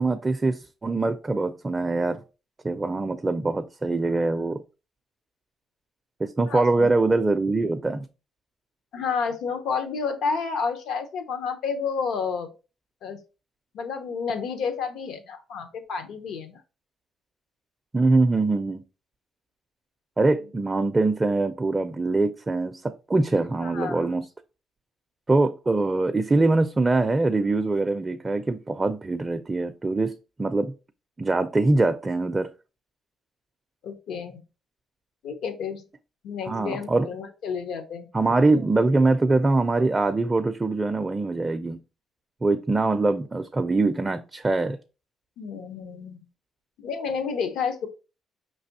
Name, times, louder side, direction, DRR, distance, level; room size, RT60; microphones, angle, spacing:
voice 1, 0.0-2.2 2.6-4.6 6.2-8.1 17.9-18.8 20.2-24.3 25.3-30.7 31.2-32.5 36.4-37.1 38.1-41.8 42.4-44.8, right 3 dB, 25° right, 0.4 m, -23 dB
voice 2, 6.5-6.9 8.9-12.5 13.0-13.2 13.7-16.6 23.6-24.1 33.8-34.4 35.2-35.8 36.2-38.1 45.4-46.3 46.8-47.9, left 5 dB, 80° left, 0.7 m, -30 dB
5.1 x 3.3 x 2.7 m
cardioid pair, 90°, 0 cm